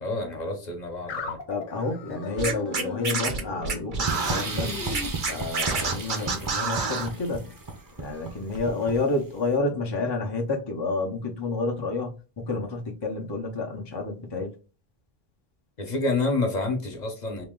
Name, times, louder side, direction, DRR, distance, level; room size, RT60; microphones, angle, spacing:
voice 1, 0.0-1.4 8.8-9.0 15.8-17.4, left 2 dB, 45° left, 1.0 m, -28 dB
sound 1, 1.1-6.0, left 4 dB, 65° left, 0.9 m, -37 dB
voice 2, 1.5-4.7 5.2-7.5 8.0-14.5, left 3 dB, 30° left, 0.6 m, -29 dB
Scratching (performance technique), 2.4-4.4 4.9-7.1, right 5 dB, 55° right, 0.9 m, -28 dB
sound 2, 4.1-9.2, right 3 dB, 25° right, 0.6 m, -34 dB
2.9 x 2.8 x 3.6 m
omnidirectional pair, 1.0 m